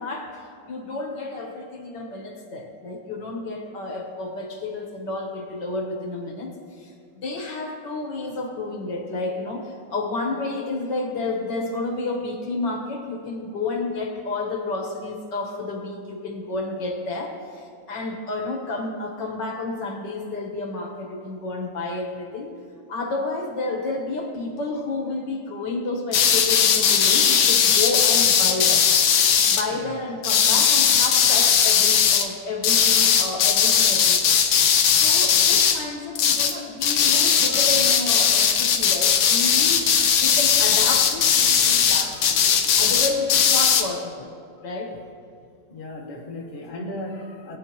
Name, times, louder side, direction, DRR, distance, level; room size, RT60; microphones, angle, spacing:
voice 1, 0.0-6.5 6.8-22.5 22.9-28.9 29.2-34.4 35.0-42.2 42.8-44.3 44.6-45.0, left 3 dB, 65° left, 1 dB, 1.9 m, -30 dB
sound 1, 26.1-29.6 30.2-32.3 32.6-35.8 36.2-36.6 36.8-43.9, left 7 dB, 90° left, 1.6 m, -18 dB
voice 2, 45.7-47.6, left 1 dB, 30° left, -1 dB, 1.3 m, -36 dB
19.5 x 9.0 x 2.9 m, 2.4 s
omnidirectional pair, 2.1 m